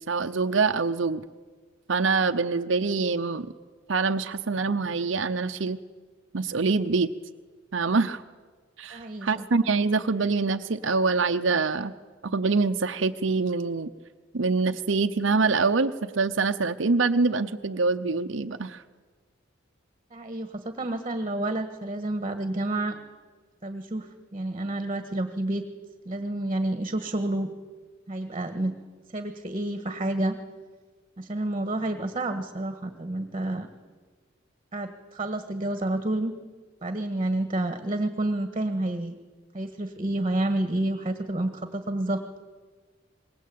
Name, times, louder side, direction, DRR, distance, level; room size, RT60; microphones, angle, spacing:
voice 1, 0.1-1.2 1.9-3.5 3.9-5.8 6.3-7.1 7.7-8.2 8.8-11.9 12.2-13.9 14.3-18.8, right 4 dB, 70° right, 7 dB, 0.8 m, -25 dB
voice 2, 8.9-9.4 20.1-23.0 23.6-25.6 26.0-27.5 28.1-28.7 29.1-30.4 31.2-33.7 34.7-36.3 36.8-39.1 39.5-42.2, right 1 dB, 30° right, 8 dB, 1.5 m, -29 dB
26.0 x 21.5 x 8.6 m, 1.4 s
head